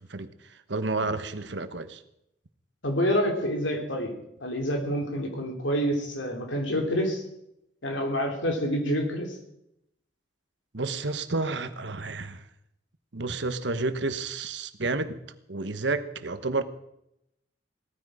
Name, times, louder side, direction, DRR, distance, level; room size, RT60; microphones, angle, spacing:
voice 1, 0.1-2.0 10.7-12.4 13.1-15.2 15.5-16.6, right 3 dB, 65° right, 10 dB, 1.1 m, -30 dB
voice 2, 2.8-4.1 4.4-7.2 7.8-9.4, equal, 80° left, 3 dB, 3.2 m, -27 dB
18.0 x 13.5 x 5.0 m, 0.81 s
head